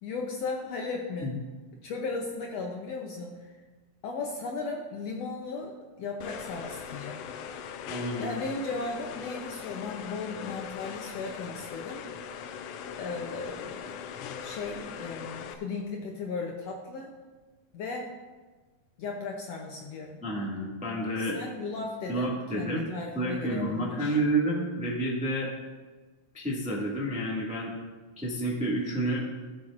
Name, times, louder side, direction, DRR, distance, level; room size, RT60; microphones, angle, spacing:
voice 1, 0.0-1.3 1.8-3.5 4.0-7.2 8.2-12.0 12.9-14.1 14.4-17.1 17.7-18.1 19.0-20.2 21.2-24.2, left 3 dB, 70° left, 0 dB, 1.7 m, -36 dB
sound 1, 6.2-15.5, left 7 dB, 90° left, 1.4 m, -40 dB
voice 2, 7.8-8.3 20.2-21.5 22.1-22.9 23.1-25.5 26.3-27.7 28.2-29.2, right 1 dB, 5° right, -5 dB, 1.2 m, -29 dB
17.5 x 7.6 x 2.5 m, 1.3 s
omnidirectional pair, 3.6 m